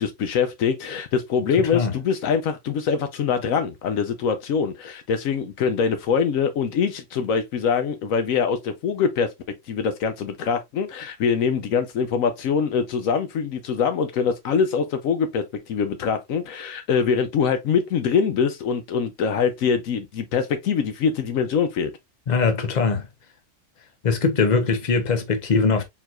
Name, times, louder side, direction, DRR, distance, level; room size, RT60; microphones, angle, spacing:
voice 1, 0.0-21.9, left 6 dB, 80° left, 1.1 m, -24 dB
voice 2, 22.3-23.1 24.0-25.8, left 4 dB, 35° left, 0.9 m, -21 dB
4.5 x 3.9 x 2.4 m
omnidirectional pair, 1.4 m